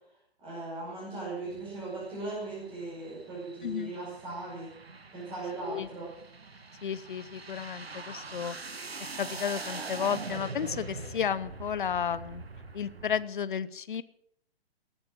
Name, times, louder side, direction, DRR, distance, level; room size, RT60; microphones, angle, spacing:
voice 1, 0.4-4.7 5.1-6.1, right 2 dB, 15° right, -6 dB, 5.7 m, -38 dB
sound 1, 1.4-13.2, right 3 dB, 75° right, 1.5 m, -43 dB
voice 2, 3.6-3.9 5.7-5.9 6.8-8.6 9.2-12.4 12.7-14.0, left 8 dB, 55° left, 17 dB, 0.9 m, -32 dB
17.5 x 9.6 x 6.4 m, 0.70 s
figure-of-eight pair, 125°, 31 cm